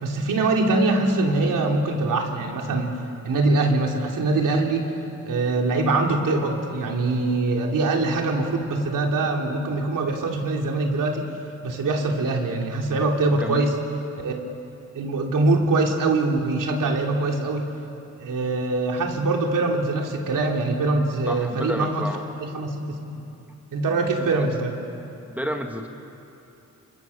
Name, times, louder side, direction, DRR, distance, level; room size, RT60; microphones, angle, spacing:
voice 1, 0.0-3.0 3.2-4.9 5.3-11.3 11.6-13.8 14.2-14.5 14.9-17.7 18.2-22.1 22.4-23.2 23.7-24.8, right 2 dB, 80° right, 1 dB, 3.3 m, -23 dB
voice 2, 13.4-13.8 21.3-22.3 24.2-24.5 25.3-25.9, equal, 5° right, 3 dB, 1.8 m, -31 dB
29.0 x 26.5 x 7.2 m, 2.8 s
wide cardioid pair, 115°, 32 cm